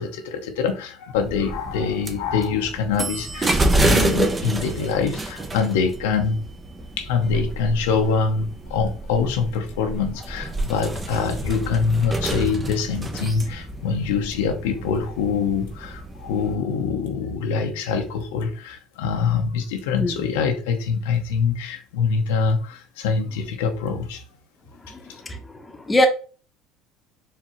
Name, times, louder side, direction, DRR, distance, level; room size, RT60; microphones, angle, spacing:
voice 1, 0.0-6.4 7.0-24.2 25.1-25.2, left 5 dB, 85° left, 0.7 m, -24 dB
sound 1, 1.2-16.6, right 2 dB, 25° right, 0.7 m, -28 dB
voice 2, 20.0-20.2 24.9-25.0 25.2-25.4 25.9-26.1, left 1 dB, 15° left, 0.9 m, -20 dB
4.6 x 2.9 x 3.0 m
hypercardioid pair, 80°, 0 cm